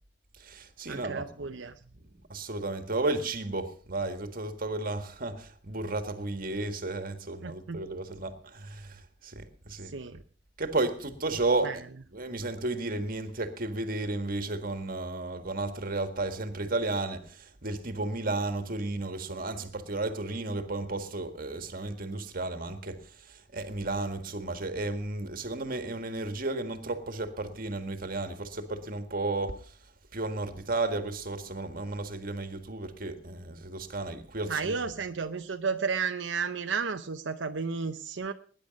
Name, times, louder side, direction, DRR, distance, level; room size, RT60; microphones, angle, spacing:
voice 1, 0.4-1.3 1.9-9.9 10.6-11.8 12.1-29.7 30.1-34.7, right 2 dB, 50° right, 1.8 m, -33 dB
voice 2, 0.9-1.8 7.4-7.8 9.8-10.2 11.6-11.8 34.5-38.3, right 5 dB, 90° right, 0.7 m, -33 dB
19.0 x 10.5 x 5.3 m
head